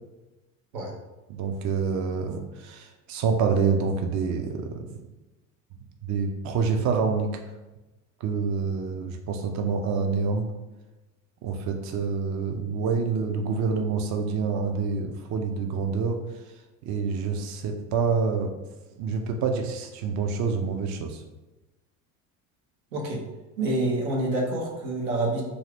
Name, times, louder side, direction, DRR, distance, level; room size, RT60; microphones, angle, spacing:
voice 1, 1.3-4.8 6.0-7.3 8.2-10.4 11.4-16.2 16.9-18.5 19.0-21.2, right 5 dB, 45° right, 4 dB, 0.5 m, -27 dB
voice 2, 22.9-23.2 23.6-25.4, right 2 dB, 90° right, -1 dB, 0.8 m, -27 dB
2.7 x 2.4 x 3.3 m, 1.1 s
hypercardioid pair, 85°, 39 cm